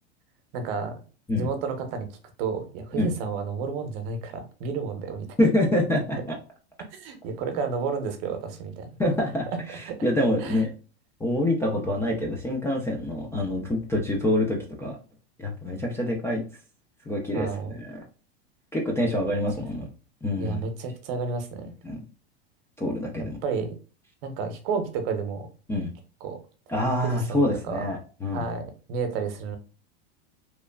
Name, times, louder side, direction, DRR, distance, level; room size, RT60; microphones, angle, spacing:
voice 1, 0.5-1.0 1.3-5.3 6.9-8.9 9.9-10.0 10.4-10.6 17.3-17.8 20.4-21.7 23.4-23.8 24.2-25.5 26.2-26.4 27.0-27.8 28.3-29.6, right 5 dB, 60° right, 7 dB, 0.8 m, -31 dB
voice 2, 5.4-6.3 9.0-10.7 11.2-15.0 15.4-16.4 17.1-18.0 18.7-19.9 20.2-20.6 21.8-22.0 22.8-23.4 25.7-25.9 26.7-28.5, left 1 dB, 10° left, -1 dB, 0.3 m, -26 dB
2.9 x 2.3 x 2.2 m, 0.37 s
supercardioid pair, 120°, 33 cm